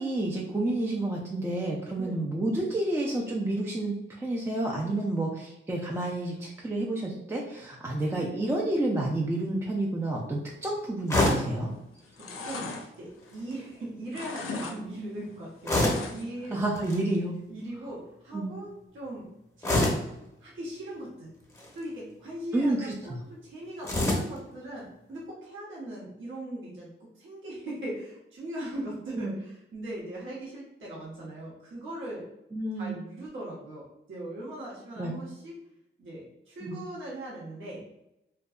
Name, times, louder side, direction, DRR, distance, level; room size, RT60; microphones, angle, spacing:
voice 1, 0.0-11.7 16.5-17.4 18.3-18.5 22.5-23.2 29.1-29.3 32.5-33.0 35.0-35.1 36.6-36.8, right 2 dB, 10° right, -2 dB, 0.4 m, -30 dB
sound 1, 11.1-11.6 13.2-13.6 15.6-16.2 16.7-17.0 19.6-20.1 21.4-21.8 23.8-24.4, left 1 dB, 15° left, 0.7 m, -26 dB
sound 2, 11.7-11.8 12.0-13.8 14.1-14.8 15.0-16.5 16.8-16.9, left 3 dB, 85° left, 0.4 m, -39 dB
voice 2, 12.1-12.7 13.0-16.6 17.5-19.3 19.6-20.0 20.4-21.3 21.7-32.2 32.7-35.6 36.0-37.9, right 1 dB, 65° right, -5 dB, 0.9 m, -39 dB
2.6 x 2.2 x 2.3 m, 0.87 s
cardioid pair, 85°, 21 cm